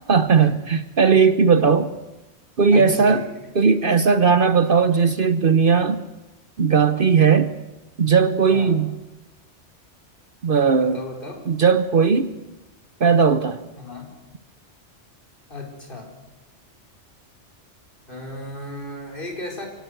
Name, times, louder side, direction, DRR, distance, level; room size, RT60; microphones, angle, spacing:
voice 1, 0.0-1.9 2.6-3.2 3.6-6.0 6.6-7.5 8.0-8.9 10.4-11.0 11.5-12.3 13.0-13.6, right 5 dB, 50° right, 12 dB, 1.0 m, -17 dB
voice 2, 2.7-3.3 8.5-8.8 10.7-11.5 13.8-14.1 15.5-16.1 18.1-19.7, left 3 dB, 45° left, 2 dB, 4.6 m, -34 dB
24.5 x 18.0 x 7.9 m, 1.1 s
omnidirectional pair, 1.2 m